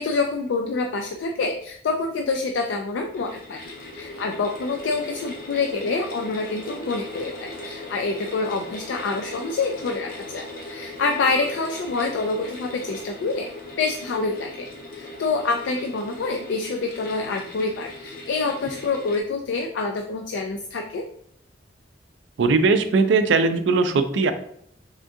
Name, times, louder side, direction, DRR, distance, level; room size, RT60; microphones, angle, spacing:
voice 1, 0.0-3.6 3.9-13.5 13.8-14.7 14.9-21.1, left 3 dB, 85° left, 3 dB, 0.4 m, -27 dB
sound 1, 3.0-19.2, left 1 dB, 55° left, 0.8 m, -38 dB
voice 2, 22.4-24.3, right 4 dB, 85° right, 9 dB, 0.4 m, -19 dB
3.6 x 2.6 x 3.5 m, 0.68 s
head